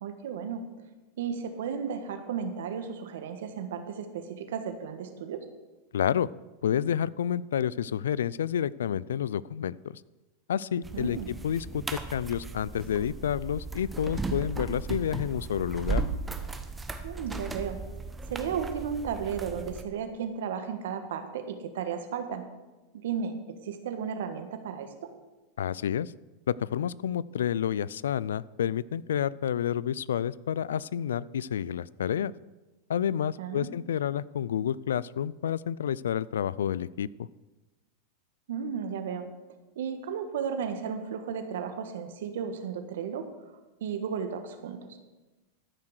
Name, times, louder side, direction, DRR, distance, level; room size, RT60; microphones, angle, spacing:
voice 1, 0.0-0.6 1.2-5.4 10.9-11.3 17.0-17.8 18.3-22.4 23.0-23.4 23.6-25.1 33.4-33.7 38.5-39.3 39.7-43.5 43.8-45.0, right 7 dB, 75° right, 8 dB, 1.4 m, -34 dB
voice 2, 5.9-6.3 6.6-10.0 10.5-11.2 11.4-16.1 25.6-26.1 26.5-32.3 32.9-37.1, left 9 dB, 85° left, 21 dB, 0.3 m, -29 dB
sound 1, 10.8-19.8, right 4 dB, 15° right, 1.1 m, -36 dB
13.5 x 5.9 x 6.5 m, 1.1 s
hypercardioid pair, 105°, 0 cm